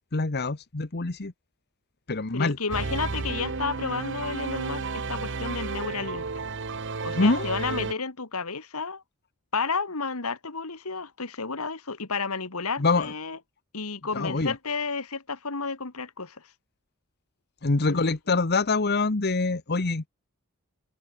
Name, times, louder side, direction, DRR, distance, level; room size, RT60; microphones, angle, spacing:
voice 1, 0.1-1.3 2.1-2.6 7.1-7.5 12.8-13.1 14.1-14.5 17.6-20.1, left 3 dB, 50° left, 1.1 m, -25 dB
voice 2, 2.3-6.3 7.0-9.0 9.5-13.4 13.7-16.4 17.9-18.1, left 4 dB, 75° left, 2.1 m, -31 dB
sound 1, 2.7-7.9, right 4 dB, 55° right, 1.2 m, -32 dB
head